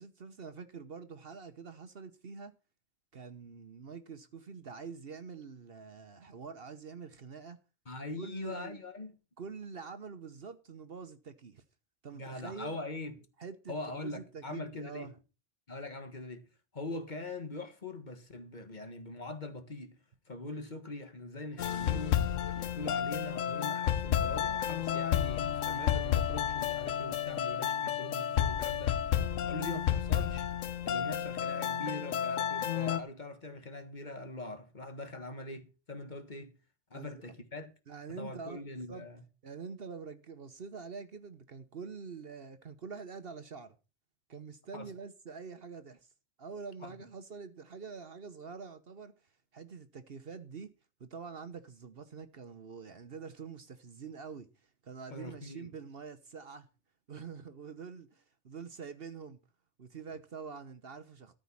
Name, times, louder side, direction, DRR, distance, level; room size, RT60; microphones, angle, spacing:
voice 1, 0.0-2.5 3.1-7.6 8.2-8.8 9.4-11.6 12.0-12.8 13.4-13.7 14.0-15.1 36.9-37.3 37.9-38.6 38.9-39.1 39.4-43.8 44.3-46.1 46.4-49.1 49.5-50.7 51.0-56.7 57.1-59.4 59.8-61.3, right 5 dB, 50° right, 1.1 m, -46 dB
voice 2, 7.9-9.2 12.1-13.3 13.7-15.1 15.7-16.5 16.7-20.0 20.3-22.3 22.5-30.5 30.8-36.5 36.9-37.7 38.2-39.2 44.7-44.9 46.8-46.9 55.1-55.7, left 2 dB, 35° left, 1.6 m, -42 dB
sound 1, 21.6-33.0, left 9 dB, 80° left, 1.2 m, -31 dB
13.5 x 5.2 x 8.4 m
omnidirectional pair, 1.3 m